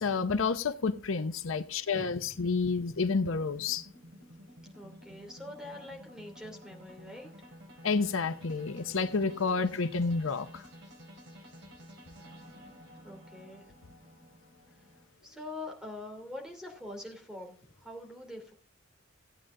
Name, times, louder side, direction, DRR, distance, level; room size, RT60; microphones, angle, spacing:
voice 1, 0.0-3.9 7.8-10.7, left 4 dB, 75° left, 0.8 m, -30 dB
sound 1, 0.8-15.0, equal, 60° right, 3.2 m, -52 dB
voice 2, 4.7-7.3 11.4-11.6 12.9-13.7 15.2-18.5, left 1 dB, 5° right, 2.8 m, -44 dB
15.5 x 9.0 x 3.7 m
head